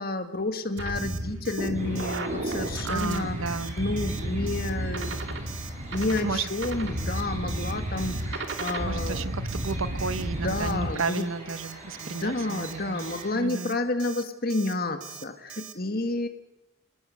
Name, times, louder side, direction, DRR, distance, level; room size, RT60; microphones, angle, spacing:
voice 1, 0.0-3.4 3.8-5.2 5.9-9.2 10.2-11.3 12.0-16.3, left 2 dB, 45° left, 7 dB, 1.9 m, -30 dB
sound 1, 0.8-10.9, right 1 dB, 55° right, 2.3 m, -32 dB
Alarm, 1.0-1.2 1.5-1.7 2.0-2.2 2.5-2.7 3.0-3.2 3.5-3.7 4.0-4.2 4.5-4.7 5.0-5.2 5.5-5.7 6.0-6.2 6.5-6.7 7.0-7.2 7.5-7.7 8.0-8.2 8.5-8.7 9.0-9.2 9.5-9.7 10.0-10.2 10.5-10.7 11.0-11.2 11.5-11.7 12.0-12.2 12.5-12.7 13.0-13.2 13.5-13.7 14.0-14.2 14.5-14.7 15.0-15.2 15.5-15.7, right 11 dB, 90° right, 1.8 m, -43 dB
sound 2, 1.7-13.3, right 2 dB, 35° right, 6.9 m, -45 dB
voice 2, 2.8-3.8 6.2-6.5 8.8-13.0 13.3-13.8, right 4 dB, 75° right, 13 dB, 1.1 m, -32 dB
26.5 x 19.5 x 6.5 m, 0.89 s
head